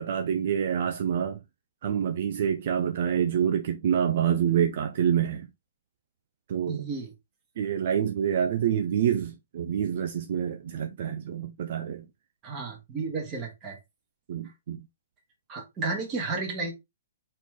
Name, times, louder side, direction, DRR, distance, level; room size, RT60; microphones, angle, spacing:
voice 1, 0.0-1.4 1.8-5.5 6.5-6.9 7.6-12.1 14.3-14.8, right 9 dB, 55° right, 0.5 m, -27 dB
voice 2, 6.7-7.1 12.4-13.8 15.5-16.7, right 4 dB, 25° right, 1.8 m, -32 dB
4.1 x 3.2 x 3.6 m
hypercardioid pair, 150°, 0 cm